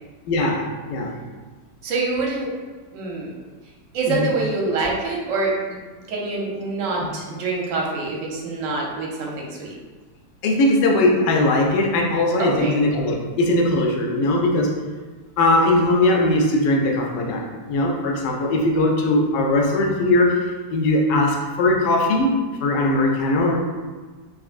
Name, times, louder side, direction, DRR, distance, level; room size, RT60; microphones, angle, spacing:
voice 1, 0.3-1.2 4.1-4.2 7.0-7.1 10.4-14.8 15.4-20.4 20.7-22.3 22.6-23.6, left 1 dB, 85° left, 0 dB, 1.2 m, -20 dB
voice 2, 1.8-2.5 2.9-3.3 3.9-5.8 6.1-9.7 12.4-12.8, right 3 dB, 60° right, -2 dB, 0.9 m, -25 dB
3.6 x 2.4 x 2.5 m, 1.3 s
omnidirectional pair, 1.8 m